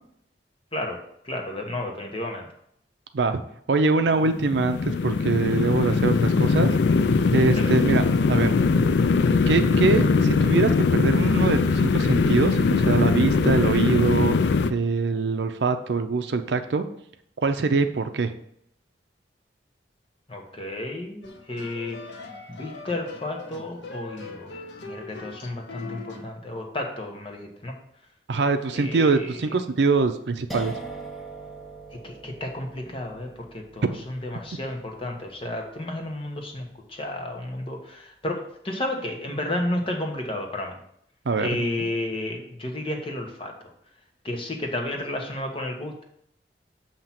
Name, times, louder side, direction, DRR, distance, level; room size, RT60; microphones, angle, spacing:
voice 1, 1.2-2.5 7.6-7.8 20.3-22.0 22.5-24.6 24.9-27.7 28.7-29.4 32.0-40.7 41.4-43.5 44.2-46.0, left 1 dB, 30° left, 2 dB, 1.1 m, -32 dB
voice 2, 3.7-6.8 7.3-8.5 9.5-14.4 14.7-16.9 17.4-18.3 28.3-30.7 41.3-41.9, right 4 dB, 70° right, 8 dB, 0.5 m, -23 dB
sound 1, 4.2-14.7, left 4 dB, 70° left, 0.4 m, -21 dB
sound 2, 21.2-26.3, left 3 dB, 90° left, 0.9 m, -41 dB
sound 3, 30.5-37.4, right 3 dB, ahead, 0.7 m, -42 dB
7.2 x 2.9 x 5.7 m, 0.71 s
head